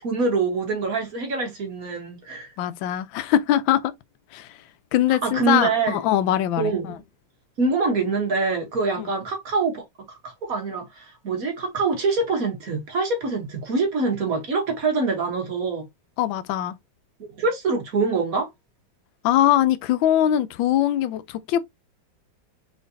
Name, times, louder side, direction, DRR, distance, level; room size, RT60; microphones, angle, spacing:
voice 1, 0.0-2.5 5.1-6.0 6.6-7.0 7.6-15.8 17.4-18.5, right 4 dB, 50° right, 1.5 m, -25 dB
voice 2, 2.6-3.9 4.3-4.5 4.9-6.9 9.0-9.1 16.2-16.7 19.2-21.6, left 12 dB, 85° left, 1.3 m, -22 dB
4.1 x 3.8 x 2.6 m
omnidirectional pair, 2.1 m